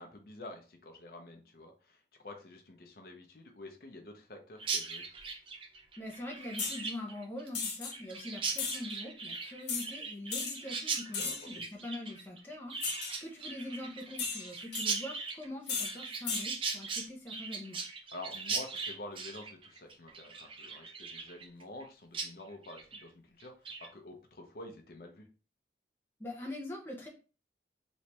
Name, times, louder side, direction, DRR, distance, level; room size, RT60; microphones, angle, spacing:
voice 1, 0.0-5.0 11.2-11.6 18.1-25.3, left 1 dB, 55° left, 3 dB, 0.7 m, -48 dB
Chirp tweet, 4.6-21.9 22.1-22.3 22.6-23.0 23.4-23.9, right 4 dB, 30° right, 0.4 m, -39 dB
voice 2, 6.0-17.8 26.2-27.1, left 1 dB, 15° left, -1 dB, 0.6 m, -43 dB
sound 1, 6.6-6.8 7.5-7.9 8.6-8.8 9.7-9.9 10.3-10.6 11.1-11.5 12.8-13.2 14.2-14.9 15.7-15.9 16.3-16.5, left 5 dB, 85° left, 1.3 m, -35 dB
3.2 x 3.2 x 2.9 m, 0.35 s
head